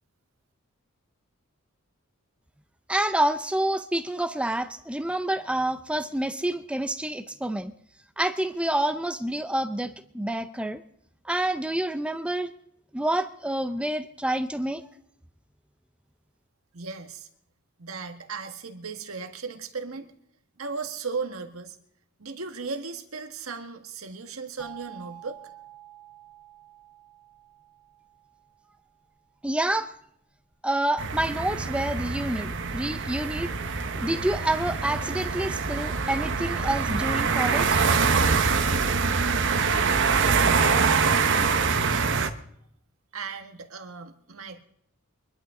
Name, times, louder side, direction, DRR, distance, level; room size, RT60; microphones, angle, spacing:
voice 1, 2.9-7.7 8.2-10.8 11.3-12.5 12.9-14.8 29.4-29.9 30.6-33.5 33.9-37.8, right 1 dB, 5° right, 10 dB, 0.6 m, -28 dB
voice 2, 16.7-17.3 17.8-20.1 20.6-21.8 22.2-25.4 41.8-42.3 43.1-44.6, right 4 dB, 85° right, 6 dB, 1.7 m, -36 dB
sound 1, 24.6-29.3, right 12 dB, 50° left, 7.4 m, -49 dB
sound 2, 31.0-42.3, right 5 dB, 60° right, 1.1 m, -24 dB
24.5 x 12.0 x 3.8 m, 0.71 s
head